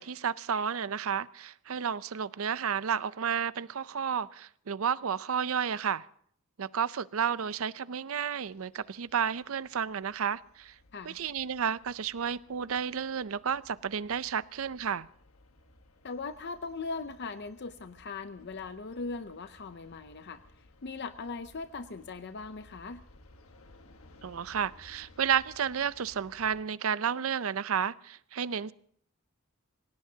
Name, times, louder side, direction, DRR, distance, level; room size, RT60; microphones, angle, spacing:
voice 1, 0.0-6.0 6.6-10.8 11.0-15.1 24.2-28.7, right 7 dB, 70° right, 0.6 m, -32 dB
sound 1, 8.4-26.6, left 1 dB, 75° left, 1.3 m, -59 dB
voice 2, 16.0-20.4 20.8-23.0, left 4 dB, 55° left, 0.6 m, -39 dB
27.5 x 17.0 x 2.8 m
head